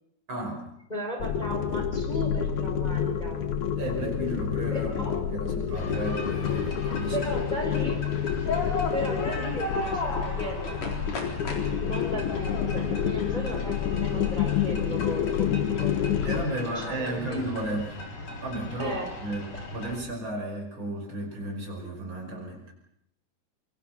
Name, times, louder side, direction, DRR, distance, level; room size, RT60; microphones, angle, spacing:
voice 1, 0.3-0.7 3.8-7.3 16.2-17.9 18.3-22.6, right 1 dB, 35° right, 2 dB, 6.3 m, -34 dB
voice 2, 0.9-3.4 4.7-5.1 7.1-8.0 8.9-10.8 11.8-15.9 16.5-17.4 18.8-19.1, equal, 15° left, 1 dB, 4.8 m, -35 dB
sound 1, 1.2-16.4, left 8 dB, 70° left, 2.7 m, -28 dB
sound 2, 5.7-20.0, left 2 dB, 55° left, 5.2 m, -36 dB
26.5 x 25.0 x 5.9 m, 0.79 s
omnidirectional pair, 3.7 m